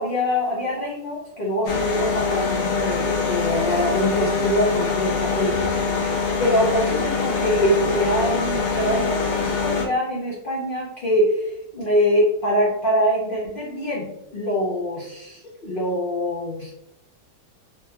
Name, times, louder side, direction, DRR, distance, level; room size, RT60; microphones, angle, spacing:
voice 1, 0.0-16.7, equal, 45° left, -5 dB, 0.7 m, -24 dB
sound 1, 1.7-9.9, left 4 dB, 75° left, 1.2 m, -24 dB
3.6 x 3.0 x 2.8 m, 0.80 s
omnidirectional pair, 1.9 m